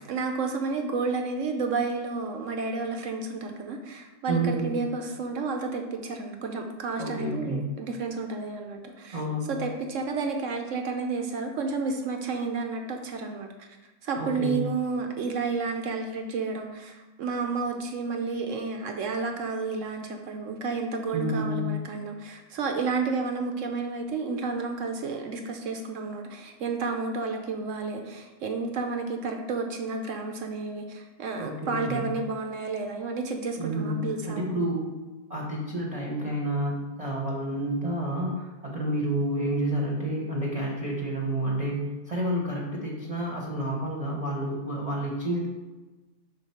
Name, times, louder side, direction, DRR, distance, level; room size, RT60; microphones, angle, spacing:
voice 1, 0.1-9.2 9.5-13.7 14.0-34.6, right 4 dB, 65° right, 4 dB, 0.8 m, -31 dB
voice 2, 4.3-4.8 7.0-7.6 9.1-9.6 14.1-14.6 21.1-21.7 31.4-32.1 33.6-35.0 35.3-45.5, right 1 dB, 30° right, -3 dB, 0.7 m, -29 dB
5.1 x 3.9 x 5.5 m, 1.2 s
omnidirectional pair, 1.8 m